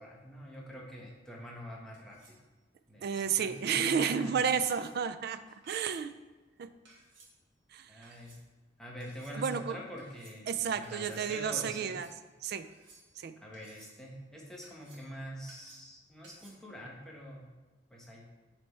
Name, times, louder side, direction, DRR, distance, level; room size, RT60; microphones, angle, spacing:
voice 1, 0.0-2.4 2.9-4.5 7.9-8.4 8.8-10.5 10.7-12.0 13.4-17.5 17.9-18.2, equal, 5° left, -3 dB, 1.0 m, -45 dB
sound 1, 1.9-2.4 3.3-3.8 4.6-5.0 5.6-6.0 6.8-7.3 8.0-8.4 9.0-9.4 10.0-10.4 10.8-11.3 11.7-12.2 12.6-13.2 13.5-14.0 14.6-15.1 15.5-15.9 16.2-16.5, right 3 dB, 85° right, 1.4 m, -59 dB
voice 2, 3.0-5.4 5.7-6.1 6.6-6.7 7.7-7.9 9.3-9.8 10.5-12.1 12.4-12.7 13.2-13.3, right 7 dB, 55° right, 11 dB, 0.3 m, -31 dB
7.2 x 3.3 x 4.2 m, 1.3 s
head